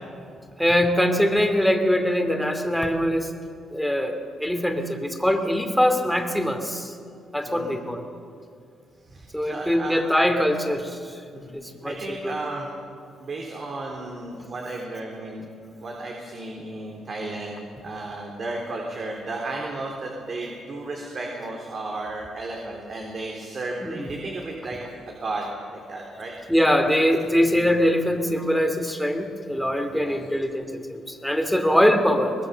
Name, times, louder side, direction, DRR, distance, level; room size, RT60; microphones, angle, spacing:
voice 1, 0.6-3.3 3.7-6.9 7.3-8.0 9.3-11.0 11.5-12.4 23.8-24.1 26.5-32.3, equal, ahead, 5 dB, 2.7 m, -22 dB
voice 2, 9.1-10.2 11.3-11.5 11.8-12.7 13.2-15.5 15.8-24.8 25.1-26.3 27.4-27.7 29.9-30.2, right 2 dB, 45° right, 0 dB, 3.6 m, -34 dB
23.5 x 20.0 x 6.9 m, 2.3 s
cardioid pair, 90°, 0 cm